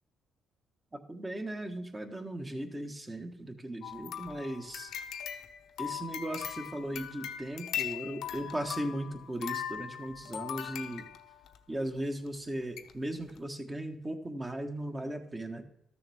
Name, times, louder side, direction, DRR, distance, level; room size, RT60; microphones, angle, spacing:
voice 1, 0.9-4.9 5.8-11.1 11.7-15.6, right 1 dB, 20° right, 5 dB, 1.4 m, -37 dB
sound 1, 3.8-11.6 12.3-12.4 12.8-12.9 13.3-13.4, left 10 dB, 80° left, 0.9 m, -40 dB
13.0 x 6.9 x 3.6 m, 0.82 s
cardioid pair, 90°, 0 cm